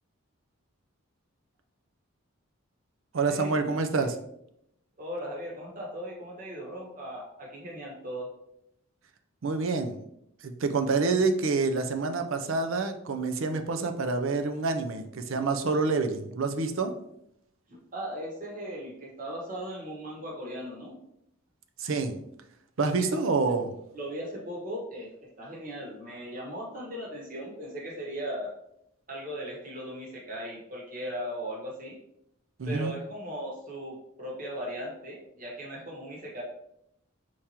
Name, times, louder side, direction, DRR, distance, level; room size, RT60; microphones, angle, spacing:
voice 1, 3.1-4.2 9.4-10.0 10.4-16.9 21.8-22.2 22.8-23.7 32.6-33.0, right 4 dB, 70° right, 7 dB, 0.5 m, -27 dB
voice 2, 5.0-8.3 17.7-20.9 23.0-23.1 23.9-25.1 25.4-28.5 29.1-32.0 32.6-36.4, equal, 40° right, -2 dB, 1.3 m, -38 dB
4.6 x 3.6 x 2.9 m, 0.76 s
head